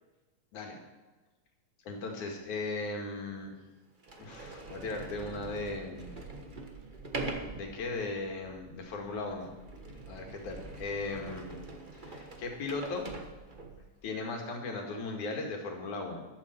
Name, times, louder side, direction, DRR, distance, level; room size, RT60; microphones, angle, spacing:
voice 1, 1.9-3.6 4.2-6.1 7.5-9.5 10.1-11.5 11.9-13.1 14.0-16.2, left 3 dB, 80° left, 1 dB, 3.6 m, -37 dB
Sliding door, 2.6-2.7 3.4-3.5 4.0-13.9, right 2 dB, 55° right, 0.5 m, -43 dB
14.5 x 12.0 x 4.6 m, 1.2 s
omnidirectional pair, 3.4 m